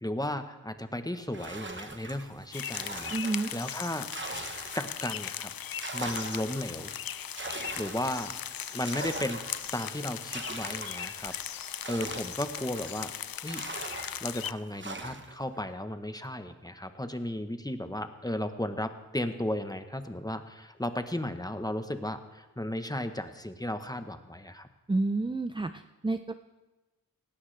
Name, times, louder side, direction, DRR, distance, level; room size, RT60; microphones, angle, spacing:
voice 1, 0.0-3.1 3.5-4.1 4.7-5.5 5.9-6.9 7.8-8.4 8.7-9.4 9.7-13.1 13.4-13.6 14.2-24.7, left 1 dB, 10° left, 8 dB, 0.9 m, -35 dB
sound 1, 1.3-5.2 5.6-13.1 13.5-15.4, right 2 dB, 35° right, 1.1 m, -42 dB
sound 2, 2.5-14.5, left 9 dB, 80° left, 0.5 m, -38 dB
voice 2, 3.1-3.5 24.9-26.3, right 2 dB, 15° right, 11 dB, 0.4 m, -30 dB
17.5 x 16.5 x 3.3 m, 1.1 s
wide cardioid pair, 70°, 34 cm